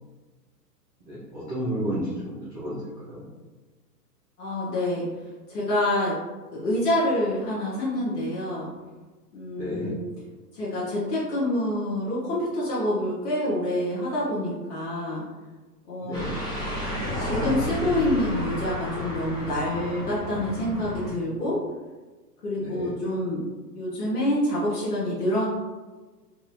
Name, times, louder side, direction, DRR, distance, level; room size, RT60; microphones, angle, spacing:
voice 1, 1.1-2.8 3.1-3.3 9.6-10.0 16.0-16.4 22.6-22.9, right 1 dB, 15° right, -13 dB, 0.4 m, -32 dB
voice 2, 4.4-6.2 6.5-8.7 9.3-10.0 10.5-15.2 15.8-16.3 17.2-21.6 22.4-23.4 23.7-25.5, left 1 dB, 65° left, -7 dB, 1.1 m, -27 dB
sound 1, 16.1-21.1, left 1 dB, 10° left, 0.8 m, -31 dB
4.1 x 2.5 x 2.8 m, 1.3 s
figure-of-eight pair, 115°, 49 cm